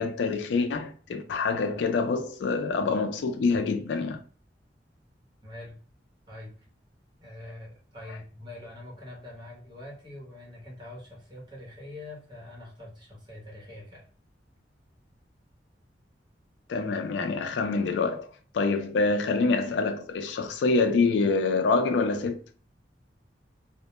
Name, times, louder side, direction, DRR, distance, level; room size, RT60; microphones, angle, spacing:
voice 1, 0.0-4.2 16.7-18.3 18.5-22.4, left 4 dB, 80° left, 0.4 m, -26 dB
voice 2, 5.4-5.7 6.3-6.5 7.2-14.0, left 1 dB, 25° right, 0.8 m, -44 dB
2.1 x 2.0 x 2.9 m
head